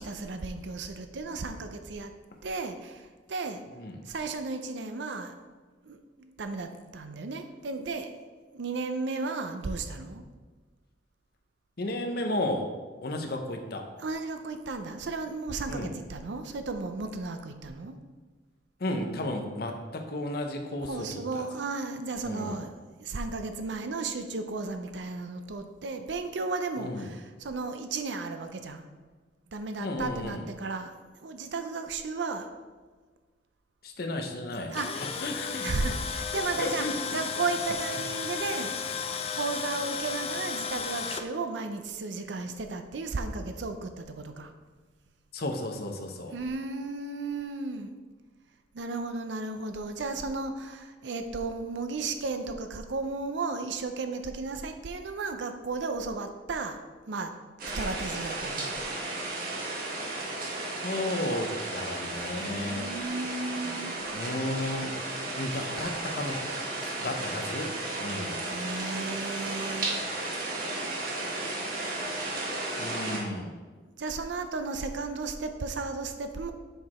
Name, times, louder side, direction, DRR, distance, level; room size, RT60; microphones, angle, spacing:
voice 1, 0.0-2.1 2.4-3.6 4.0-5.4 5.8-8.1 8.5-10.2 14.0-17.9 20.8-28.8 29.5-32.5 34.7-35.2 35.6-36.9 37.1-44.5 46.3-47.9 48.7-57.3 57.7-58.8 62.3-64.0 68.5-70.1 74.0-76.5, right 3 dB, 75° right, 7 dB, 0.6 m, -34 dB
voice 2, 11.8-12.7 13.0-13.8 15.7-15.9 18.8-21.1 21.3-21.5 22.2-22.6 26.8-27.1 29.8-30.4 33.8-35.7 36.6-37.2 45.3-46.3 60.8-62.9 64.1-65.0 65.3-66.4 66.8-68.4 72.8-73.5, left 1 dB, 55° left, 3 dB, 0.8 m, -33 dB
Tools, 34.5-41.2, left 6 dB, 35° left, 0.4 m, -34 dB
sound 1, 57.6-73.2, right 2 dB, 50° right, 1.4 m, -34 dB
6.6 x 4.7 x 4.3 m, 1.4 s
head